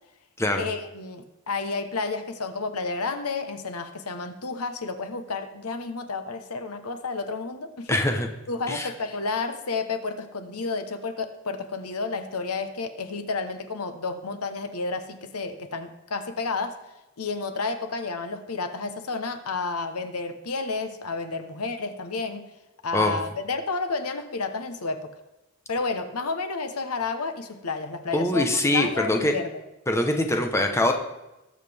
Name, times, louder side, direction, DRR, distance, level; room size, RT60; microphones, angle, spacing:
voice 1, 0.6-8.0 8.5-16.8 17.2-22.5 22.8-25.1 25.7-29.5, left 4 dB, 85° left, 8 dB, 1.1 m, -31 dB
voice 2, 7.9-8.3 8.7-8.9 22.9-23.2 28.1-29.4 29.9-30.9, left 1 dB, 10° left, 3 dB, 1.0 m, -23 dB
19.5 x 7.5 x 3.5 m, 0.99 s
head